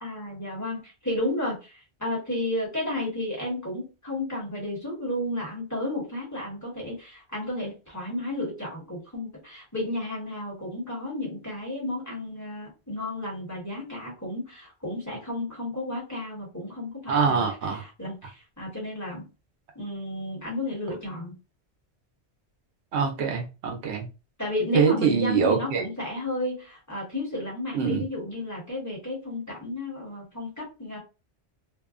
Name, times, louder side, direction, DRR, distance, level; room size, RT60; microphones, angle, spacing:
voice 1, 0.0-17.4 17.7-19.3 19.7-21.3 24.4-31.0, left 1 dB, 15° left, -5 dB, 1.1 m, -32 dB
voice 2, 17.1-17.8 22.9-24.1 24.7-25.8 27.7-28.0, right 6 dB, 80° right, 3 dB, 0.9 m, -24 dB
2.6 x 2.1 x 2.4 m, 0.30 s
omnidirectional pair, 1.1 m